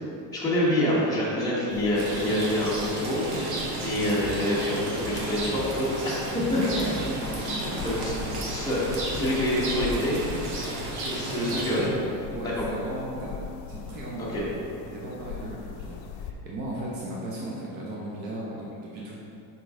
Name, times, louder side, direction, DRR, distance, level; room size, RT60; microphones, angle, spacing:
voice 1, 0.3-6.2 6.5-7.0 7.8-8.1 8.5-8.8 9.1-10.2 11.1-11.9 14.3-14.4, equal, 10° left, -9 dB, 1.1 m, -26 dB
sound 1, 1.7-16.3, left 6 dB, 70° left, 0.5 m, -41 dB
Rain, 1.9-11.9, right 2 dB, 80° right, 1.2 m, -34 dB
sound 2, 4.1-9.8, left 1 dB, 30° left, 1.3 m, -41 dB
voice 2, 6.6-7.8 8.2-8.4 11.0-11.7 12.3-14.4 14.9-19.3, right 1 dB, 25° right, -4 dB, 0.3 m, -36 dB
5.3 x 4.9 x 3.6 m, 2.8 s
cardioid pair, 175°, 44 cm